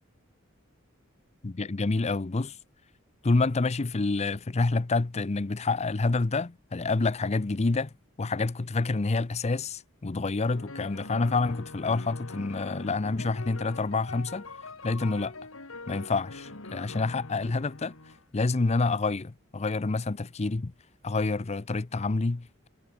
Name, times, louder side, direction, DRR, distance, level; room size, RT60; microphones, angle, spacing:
voice 1, 1.4-2.6 3.2-14.5 14.8-15.3 15.9-18.0 18.3-20.7 21.0-22.7, left 3 dB, 30° left, 0.6 m, -28 dB
sound 1, 10.5-18.2, left 3 dB, 85° left, 3.1 m, -43 dB
head